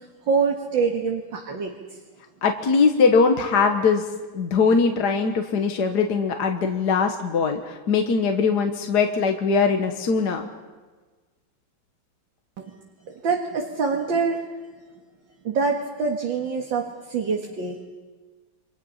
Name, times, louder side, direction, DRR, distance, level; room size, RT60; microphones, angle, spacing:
voice 1, 0.3-2.0 13.1-14.4 15.4-17.8, right 5 dB, 60° right, 1 dB, 2.5 m, -25 dB
voice 2, 2.4-4.0 4.3-10.5, left 5 dB, 55° left, 4 dB, 1.8 m, -21 dB
29.0 x 24.5 x 5.7 m, 1.3 s
omnidirectional pair, 2.3 m